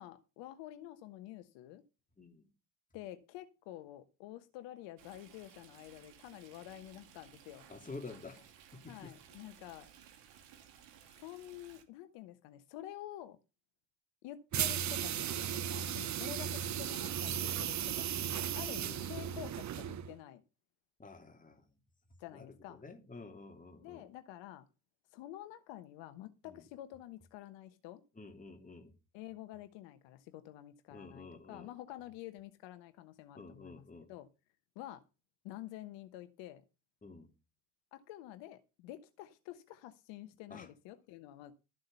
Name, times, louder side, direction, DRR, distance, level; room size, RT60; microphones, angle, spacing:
voice 1, 0.0-1.8 2.9-7.7 8.9-9.9 11.2-13.4 14.2-20.4 22.2-22.8 23.8-24.7 25.1-28.0 29.1-33.8 34.1-34.3 34.7-35.0 35.4-36.6 37.9-41.5, left 13 dB, 60° left, 1.2 m, -49 dB
voice 2, 2.2-2.5 7.7-9.1 16.3-16.5 18.8-19.1 21.0-21.8 22.3-24.1 26.4-26.7 28.1-28.9 30.9-31.7 33.3-34.1 37.0-37.3 40.5-40.7, left 3 dB, 15° left, 3.3 m, -50 dB
Stream, 5.0-11.8, right 9 dB, 65° right, 2.7 m, -59 dB
sound 1, 14.5-20.1, right 9 dB, 35° right, 0.9 m, -36 dB
13.5 x 7.7 x 5.5 m
hypercardioid pair, 60°, 49 cm